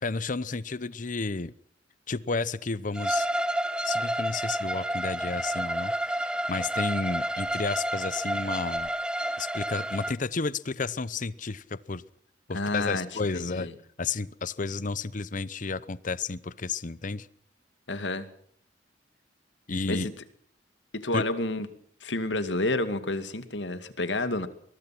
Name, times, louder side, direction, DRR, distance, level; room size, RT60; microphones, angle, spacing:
voice 1, 0.0-1.5 2.1-3.3 3.8-8.9 9.4-12.0 12.5-13.7 14.0-17.3 19.7-20.1 21.1-21.2, left 4 dB, 45° left, 17 dB, 0.8 m, -32 dB
Bowed string instrument, 2.9-10.1, right 1 dB, 5° right, 1.0 m, -30 dB
voice 2, 12.5-13.1 13.3-13.7 17.9-18.3 19.9-20.1 20.9-21.7 22.0-24.5, left 2 dB, 80° left, 11 dB, 2.3 m, -29 dB
23.0 x 21.0 x 6.0 m, 0.62 s
head